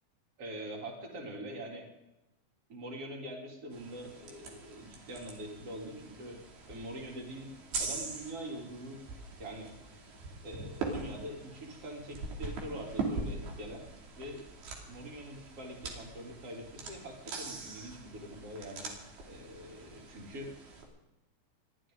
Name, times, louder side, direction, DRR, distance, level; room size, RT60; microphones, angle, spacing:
voice 1, 0.4-1.9 2.7-6.4 6.7-7.5 7.8-9.0 9.4-9.7 10.4-13.9 14.2-14.5 14.9-18.9 19.3-20.5, right 1 dB, 40° right, -1 dB, 4.0 m, -44 dB
sound 1, 3.7-20.8, right 3 dB, 90° right, 4.6 m, -42 dB
29.0 x 12.0 x 3.8 m, 0.95 s
omnidirectional pair, 4.3 m